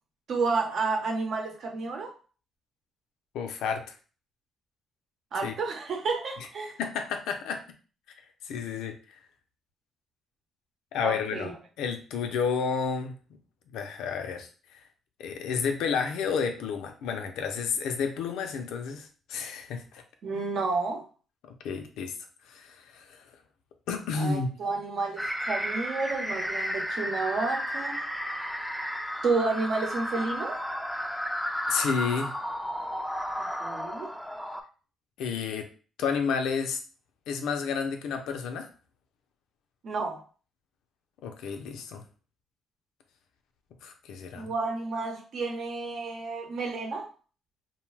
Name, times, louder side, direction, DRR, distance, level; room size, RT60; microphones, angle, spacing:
voice 1, 0.3-2.1 5.3-6.7 11.0-11.5 20.2-21.0 24.1-28.1 29.2-30.6 33.6-34.1 39.8-40.2 44.3-47.1, right 3 dB, 65° right, 2 dB, 0.9 m, -30 dB
voice 2, 3.3-3.9 5.4-5.5 6.4-6.5 6.8-7.6 8.4-8.9 10.9-11.5 11.8-13.1 13.7-14.8 15.2-20.0 21.4-22.2 22.5-23.2 23.9-24.5 31.7-32.3 35.2-35.7 36.0-36.8 37.3-38.7 41.2-42.0 43.8-44.5, left 6 dB, 90° left, 5 dB, 0.5 m, -31 dB
sound 1, 25.2-34.6, equal, ahead, 0.4 m, -33 dB
2.6 x 2.2 x 3.2 m, 0.38 s
cardioid pair, 90°, 0 cm